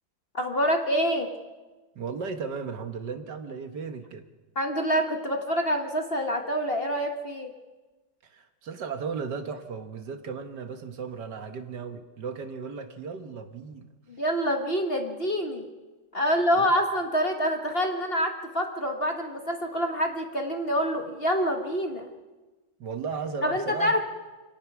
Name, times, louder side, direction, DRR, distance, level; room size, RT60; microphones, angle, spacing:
voice 1, 0.3-1.3 4.5-7.5 14.1-15.7 16.1-22.1 23.4-24.0, equal, 30° left, 4 dB, 1.4 m, -26 dB
voice 2, 2.0-4.3 8.2-13.9 16.2-16.7 22.8-24.0, right 5 dB, 60° right, 8 dB, 1.8 m, -36 dB
27.0 x 18.0 x 6.1 m, 1.2 s
omnidirectional pair, 2.2 m